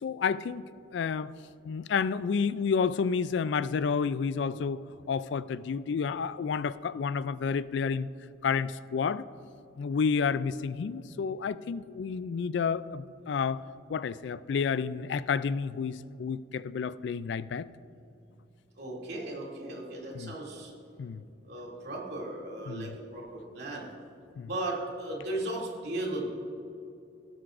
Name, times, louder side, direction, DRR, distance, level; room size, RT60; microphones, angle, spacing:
voice 1, 0.0-1.3 1.6-4.8 5.1-8.1 8.4-9.2 9.8-13.6 13.9-17.7 20.1-20.3 21.0-21.2 22.7-23.0 24.4-24.5, left 6 dB, 65° left, 16 dB, 0.3 m, -30 dB
voice 2, 18.8-20.7 21.4-23.9 24.4-26.3, right 1 dB, 60° right, -3 dB, 2.6 m, -36 dB
17.0 x 13.0 x 2.5 m, 2.6 s
head